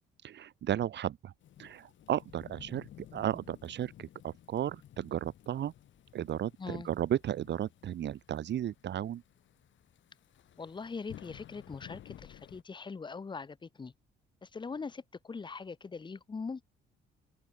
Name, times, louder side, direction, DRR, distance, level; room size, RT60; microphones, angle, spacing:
voice 1, 0.2-1.3 1.6-5.7 6.1-9.2, right 11 dB, 60° right, 1.1 m, -34 dB
Thunderstorm / Rain, 1.4-12.6, left 11 dB, 70° left, 3.1 m, -55 dB
voice 2, 10.6-13.9 14.4-16.6, left 4 dB, 25° left, 0.8 m, -41 dB
open air
cardioid pair, 90°, 20 cm